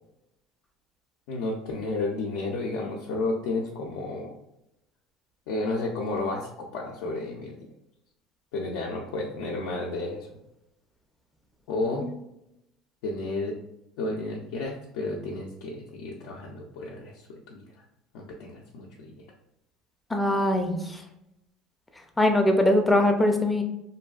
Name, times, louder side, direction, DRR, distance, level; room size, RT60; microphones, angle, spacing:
voice 1, 1.3-4.3 5.5-7.5 8.5-10.3 11.7-12.1 13.0-13.6 14.0-17.6 18.1-19.3, left 2 dB, 80° left, -3 dB, 0.4 m, -32 dB
voice 2, 20.1-20.8 22.2-23.6, left 1 dB, 10° left, 4 dB, 0.4 m, -21 dB
2.6 x 2.3 x 2.3 m, 0.85 s
supercardioid pair, 120°, 0 cm